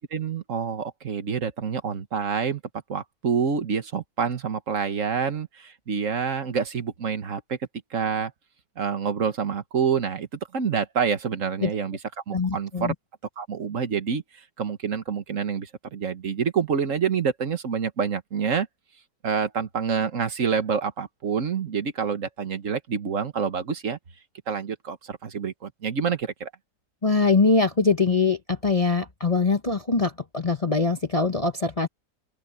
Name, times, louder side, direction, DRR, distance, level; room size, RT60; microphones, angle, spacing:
voice 1, 0.1-2.6 2.9-7.6 7.9-8.3 8.8-12.0 12.3-12.9 13.4-18.7 19.2-24.0 24.5-26.5, right 6 dB, 50° right, 1.7 m, -27 dB
voice 2, 12.3-12.9 27.0-31.9, left 4 dB, 25° left, 0.9 m, -23 dB
open air
omnidirectional pair, 1.8 m